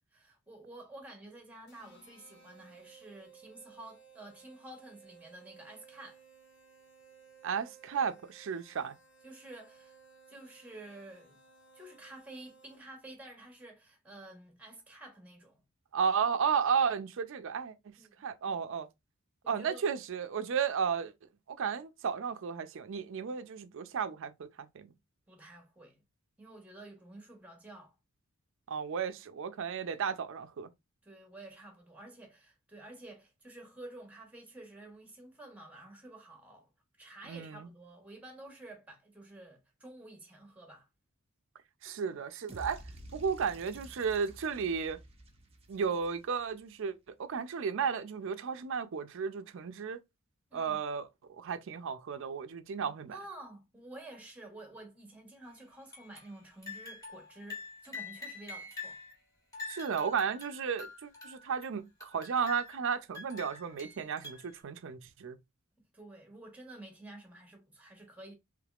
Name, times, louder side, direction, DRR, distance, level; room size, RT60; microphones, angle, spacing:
voice 1, 0.1-6.2 9.2-10.0 10.3-11.4 11.7-15.6 18.0-18.2 19.4-19.9 25.3-26.0 26.4-27.9 31.0-36.7 37.0-40.9 50.5-50.8 53.1-59.0 65.9-68.3, right 2 dB, 5° right, 1.0 m, -50 dB
sound 1, 1.7-13.1, right 6 dB, 55° left, 1.2 m, -59 dB
voice 2, 7.4-8.9 15.9-17.7 18.2-18.9 19.5-21.1 21.5-24.9 28.7-30.7 37.3-37.6 41.8-42.8 43.1-45.0 45.7-46.9 47.2-50.0 50.5-51.1 51.4-53.2 59.7-65.4, right 6 dB, 65° right, 0.4 m, -33 dB
sound 2, 42.5-46.6, right 1 dB, 30° right, 0.7 m, -50 dB
sound 3, 55.9-56.3 56.6-59.1 59.5-61.6 62.0-62.9 63.1-64.6, left 4 dB, 15° left, 1.3 m, -45 dB
3.4 x 3.1 x 2.3 m
head